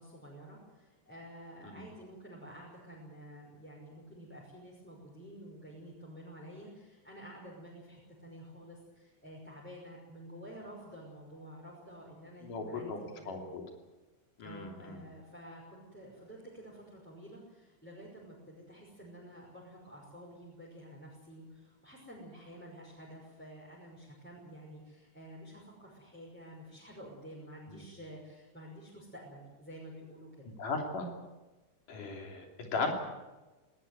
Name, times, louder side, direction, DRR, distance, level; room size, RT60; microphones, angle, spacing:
voice 1, 0.0-13.4 14.4-30.5, equal, 5° left, -4 dB, 5.6 m, -50 dB
voice 2, 12.4-13.6 14.4-15.0 27.7-27.8 30.4-31.1 31.9-32.9, left 3 dB, 85° left, 3 dB, 4.7 m, -37 dB
19.5 x 18.5 x 9.5 m, 1.2 s
omnidirectional pair, 3.6 m